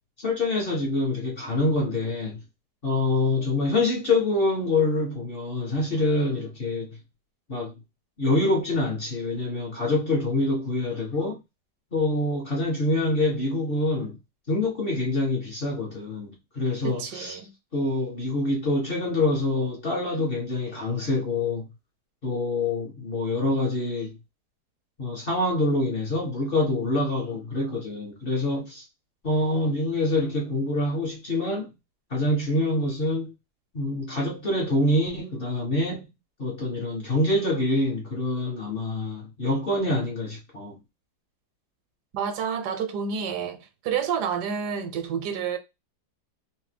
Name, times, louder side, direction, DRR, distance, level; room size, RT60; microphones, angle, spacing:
voice 1, 0.2-2.4 2.8-6.9 7.5-7.7 8.2-11.4 11.9-14.2 14.5-17.4 17.7-21.7 22.2-24.1 25.0-28.8 29.2-31.7 32.1-33.3 33.7-36.1 36.4-40.7, left 2 dB, 50° left, 0.7 m, -26 dB
voice 2, 16.8-17.5 42.1-45.6, right 7 dB, 80° right, 1.2 m, -29 dB
2.8 x 2.1 x 3.2 m
omnidirectional pair, 1.7 m